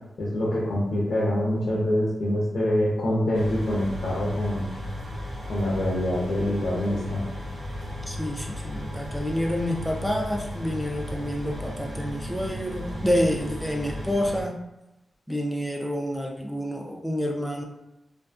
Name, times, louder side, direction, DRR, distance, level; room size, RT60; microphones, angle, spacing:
voice 1, 0.2-4.6 5.4-7.2, left 1 dB, 65° left, -6 dB, 0.6 m, -25 dB
sound 1, 3.3-14.4, equal, 55° right, 0.7 m, -35 dB
voice 2, 8.1-14.5 15.3-17.6, equal, ahead, 0 dB, 0.4 m, -28 dB
2.5 x 2.5 x 2.3 m, 0.91 s
wide cardioid pair, 135°, 0 cm